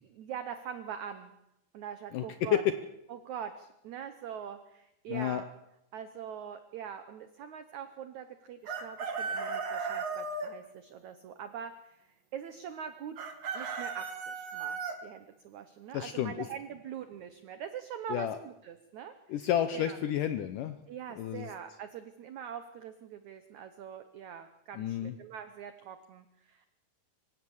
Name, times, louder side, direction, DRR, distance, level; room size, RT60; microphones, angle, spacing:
voice 1, 0.0-1.3 1.7-2.6 3.1-5.4 5.9-13.2 13.5-19.1 19.4-20.0 20.9-26.7, right 8 dB, 85° right, 10 dB, 1.6 m, -43 dB
voice 2, 5.1-5.4 15.9-16.5 18.1-18.4 19.3-20.8 21.2-21.5 24.8-25.1, left 11 dB, 75° left, 9 dB, 1.9 m, -30 dB
Chicken rooster, 8.7-10.5 13.2-15.0, right 5 dB, 45° right, 2.5 m, -35 dB
25.0 x 16.0 x 7.2 m, 0.85 s
omnidirectional pair, 4.8 m